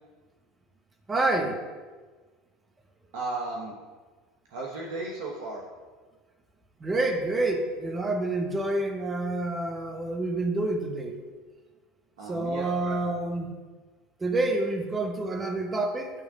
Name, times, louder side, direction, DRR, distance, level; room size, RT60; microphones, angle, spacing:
voice 1, 1.1-1.6 6.8-11.2 12.3-13.5 14.2-16.1, right 2 dB, 20° right, 4 dB, 1.1 m, -28 dB
voice 2, 3.1-3.7 4.5-5.6 12.2-13.1, right 3 dB, 65° right, -2 dB, 1.0 m, -35 dB
9.3 x 3.4 x 4.9 m, 1.4 s
hypercardioid pair, 75°, 0 cm